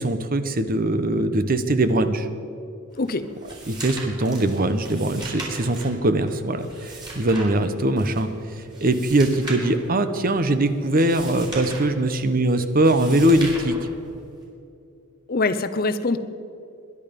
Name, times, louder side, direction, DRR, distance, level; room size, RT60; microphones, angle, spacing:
voice 1, 0.0-2.3 3.7-13.8, right 1 dB, 40° right, 10 dB, 0.9 m, -21 dB
voice 2, 2.9-3.3 15.3-16.2, left 3 dB, 45° left, 11 dB, 0.7 m, -23 dB
sound 1, 2.9-14.5, right 2 dB, 20° right, 4.4 m, -39 dB
22.0 x 11.0 x 5.3 m, 2.6 s
head